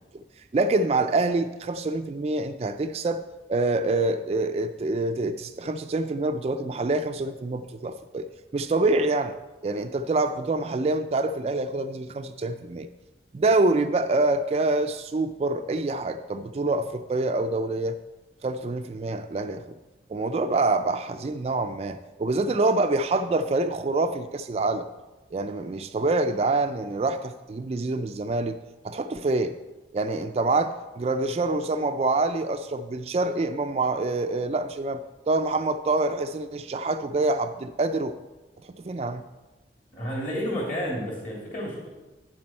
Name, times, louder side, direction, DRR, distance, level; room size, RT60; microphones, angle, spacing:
voice 1, 0.5-3.2 3.5-8.3 8.5-9.4 9.6-12.9 13.3-18.0 18.4-19.7 20.1-24.9 25.3-28.6 28.8-29.6 29.9-38.1 38.7-39.2, right 2 dB, 35° right, 8 dB, 0.3 m, -26 dB
voice 2, 39.9-41.9, equal, 45° left, -3 dB, 2.9 m, -31 dB
9.0 x 7.4 x 4.4 m, 1.1 s
head